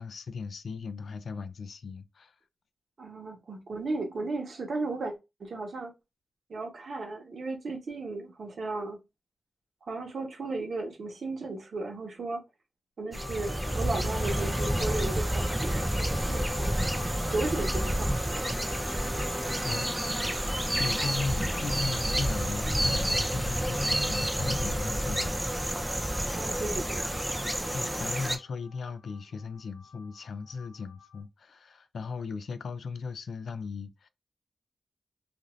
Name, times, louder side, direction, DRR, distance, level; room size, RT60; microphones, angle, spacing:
voice 1, 0.0-2.4 19.6-25.4 27.5-34.1, left 4 dB, 70° left, 0.3 m, -37 dB
voice 2, 3.0-5.1 5.4-5.9 6.5-9.0 9.9-12.4 13.0-16.7 17.3-18.5 26.3-27.1, right 3 dB, 60° right, 0.9 m, -35 dB
sound 1, 13.1-31.2, left 5 dB, 40° left, 0.9 m, -49 dB
sound 2, 13.1-28.4, right 1 dB, 10° right, 0.4 m, -29 dB
2.5 x 2.5 x 3.0 m
wide cardioid pair, 165°, 0 cm